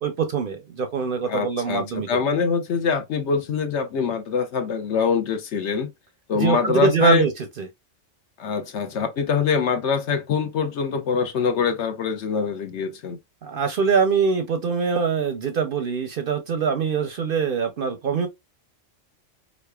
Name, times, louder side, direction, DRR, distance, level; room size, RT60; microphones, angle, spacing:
voice 1, 0.0-2.1 6.3-7.3 7.6-7.7 13.4-18.3, right 5 dB, 55° right, 0.6 m, -23 dB
voice 2, 1.3-5.9 6.3-7.3 8.4-13.2, left 6 dB, 65° left, 1.0 m, -24 dB
3.7 x 3.2 x 2.2 m
omnidirectional pair, 1.3 m